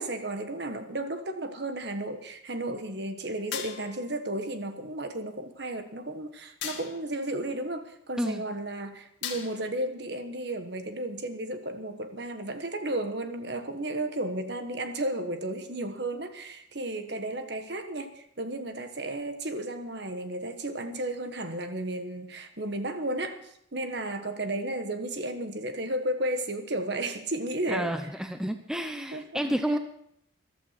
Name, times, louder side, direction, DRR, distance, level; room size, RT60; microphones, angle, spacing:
voice 1, 0.0-27.9 29.1-29.5, right 1 dB, 55° right, 8 dB, 1.4 m, -33 dB
sound 1, 3.5-4.1 6.6-7.2 9.2-9.8, left 8 dB, 65° left, 2.1 m, -37 dB
voice 2, 27.7-29.8, equal, 5° right, 7 dB, 0.7 m, -30 dB
14.5 x 12.5 x 5.9 m, 0.71 s
head